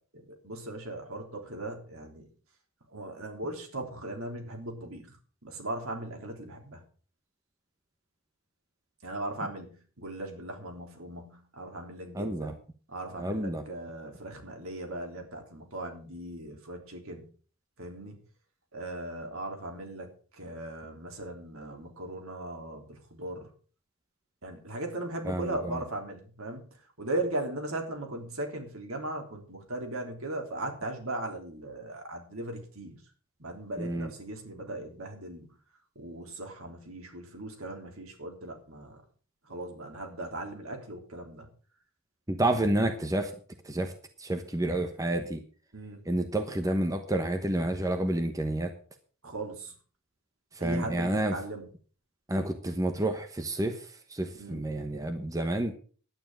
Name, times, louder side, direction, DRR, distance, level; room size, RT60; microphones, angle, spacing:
voice 1, 0.3-2.3 2.9-5.1 5.4-6.8 9.0-12.5 12.9-17.3 17.8-18.2 18.7-23.5 24.4-26.6 27.0-33.0 33.4-35.5 36.0-39.0 39.4-41.5 42.5-42.6 45.7-46.0 49.2-49.7 50.6-51.7 54.3-54.6, right 1 dB, 70° right, 3 dB, 3.5 m, -38 dB
voice 2, 12.1-12.6 13.2-13.6 25.2-25.8 33.8-34.1 42.3-43.3 43.6-43.9 44.2-45.4 46.1-48.7 50.5-51.4 52.3-55.7, right 1 dB, 15° right, 6 dB, 1.1 m, -29 dB
11.5 x 10.0 x 6.3 m, 0.41 s
head